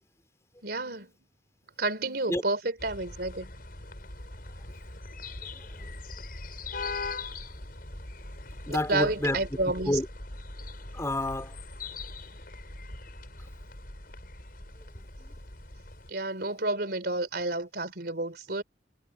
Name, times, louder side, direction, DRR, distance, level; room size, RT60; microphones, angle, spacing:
voice 1, 0.6-1.1 1.8-3.5 8.7-10.0 16.1-18.6, right 2 dB, 60° right, 3.9 m, -30 dB
sound 1, 2.8-16.1, left 3 dB, 55° left, 7.3 m, -41 dB
voice 2, 5.6-5.9 8.7-9.4 9.8-10.1 10.9-11.6 14.9-15.3, left 1 dB, 15° left, 3.1 m, -30 dB
head